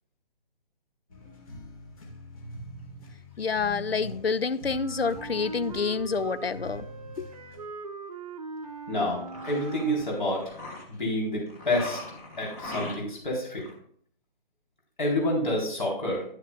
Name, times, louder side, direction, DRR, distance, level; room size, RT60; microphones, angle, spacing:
sound 1, 1.1-7.7, equal, 35° left, 1.9 m, -44 dB
voice 1, 3.4-6.9 7.2-7.3, left 5 dB, 80° left, 0.6 m, -28 dB
Wind instrument woodwind instrument, 4.6-10.4, right 4 dB, 40° right, 0.7 m, -41 dB
voice 2, 8.9-10.5 10.9-12.0 12.4-13.6 15.0-16.2, left 1 dB, 55° left, 4.0 m, -28 dB
sound 2, 8.9-11.0 11.5-13.3 13.6-13.7, left 2 dB, 15° left, 1.0 m, -40 dB
10.5 x 9.7 x 2.4 m
figure-of-eight pair, 145°, 30 cm